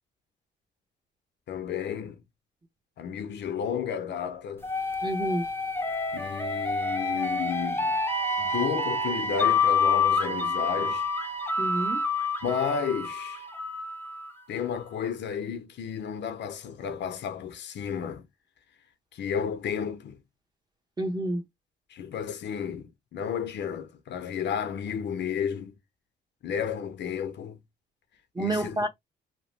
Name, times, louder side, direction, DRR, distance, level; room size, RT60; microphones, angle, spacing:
voice 1, 1.5-2.2 3.0-4.7 6.1-8.0 8.4-11.1 12.4-13.5 14.5-18.3 19.1-20.2 21.9-25.8 26.4-27.6 28.4-28.9, left 7 dB, 65° left, 0.7 m, -32 dB
sound 1, 4.6-14.3, left 3 dB, 10° left, 0.6 m, -28 dB
voice 2, 5.0-5.5 11.6-12.0 21.0-21.4 28.3-28.9, right 1 dB, 20° right, 0.9 m, -28 dB
2.8 x 2.1 x 3.1 m
cardioid pair, 90°, 20 cm